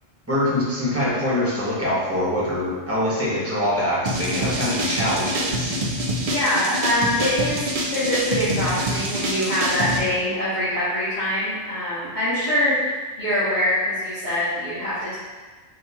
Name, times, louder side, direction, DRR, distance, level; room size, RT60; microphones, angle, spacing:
voice 1, 0.3-5.7, left 1 dB, 10° right, -8 dB, 1.0 m, -24 dB
sound 1, 4.1-10.0, right 1 dB, 60° right, 0.4 m, -26 dB
voice 2, 6.2-7.6 7.9-15.2, left 1 dB, 45° left, -16 dB, 1.6 m, -24 dB
4.2 x 2.8 x 3.4 m, 1.4 s
omnidirectional pair, 1.3 m